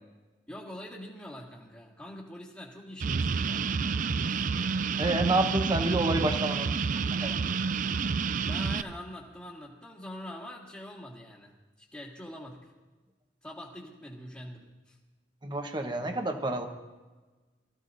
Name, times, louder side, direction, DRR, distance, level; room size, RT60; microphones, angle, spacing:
voice 1, 0.5-3.7 4.3-4.5 8.4-12.7 13.4-15.0, left 1 dB, 15° left, -7 dB, 1.9 m, -44 dB
sound 1, 3.0-8.8, right 5 dB, 45° right, 0.4 m, -29 dB
voice 2, 5.0-6.7 7.2-7.3 15.4-16.7, right 2 dB, 25° right, 4 dB, 1.2 m, -28 dB
23.5 x 15.0 x 2.7 m, 1.2 s
head